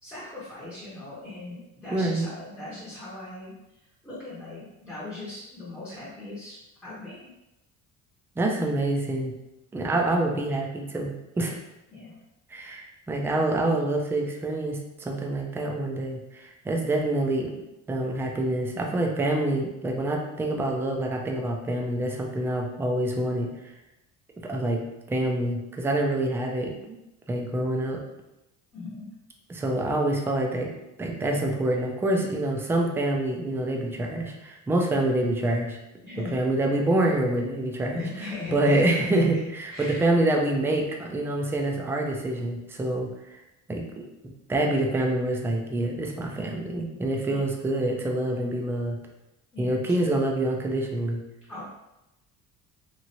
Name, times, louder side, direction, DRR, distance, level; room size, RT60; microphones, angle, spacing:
voice 1, 0.0-7.3 11.9-12.2 28.7-29.1 36.0-36.3 37.9-39.3 39.7-40.1 47.3-47.4 49.5-50.1 51.5-51.6, left 2 dB, 10° left, -9 dB, 0.7 m, -39 dB
voice 2, 1.9-2.3 8.4-9.3 9.7-11.6 12.5-17.5 17.9-23.7 24.4-24.8 25.1-27.0 27.3-28.0 29.5-30.7 31.0-35.8 36.3-38.0 38.5-43.4 43.7-49.0 49.6-51.2, right 1 dB, 10° right, 1 dB, 0.3 m, -26 dB
3.0 x 2.5 x 2.7 m, 0.92 s
cardioid pair, 125°, 32 cm